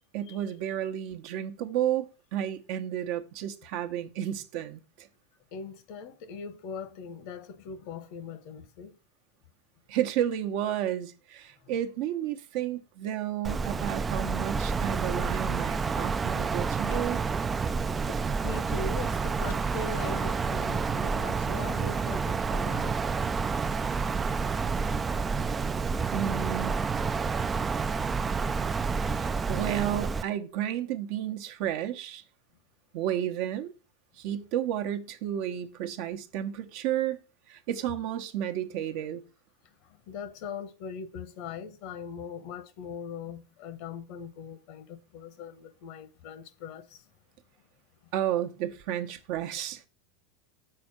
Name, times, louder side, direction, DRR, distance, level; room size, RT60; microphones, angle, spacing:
voice 1, 0.1-5.1 9.9-17.2 26.1-26.7 29.1-32.2 32.9-33.7 34.2-37.2 37.5-39.2 48.1-49.9, right 11 dB, 60° right, 0.9 m, -32 dB
voice 2, 5.5-8.9 18.4-22.9 28.0-28.1 40.1-47.0, left 5 dB, 60° left, 1.0 m, -40 dB
Wind, 13.4-30.2, right 5 dB, 20° right, 0.4 m, -29 dB
sound 1, 16.9-18.6 18.9-20.5, left 8 dB, 80° left, 1.1 m, -51 dB
6.8 x 4.3 x 5.9 m
hypercardioid pair, 90°, 0 cm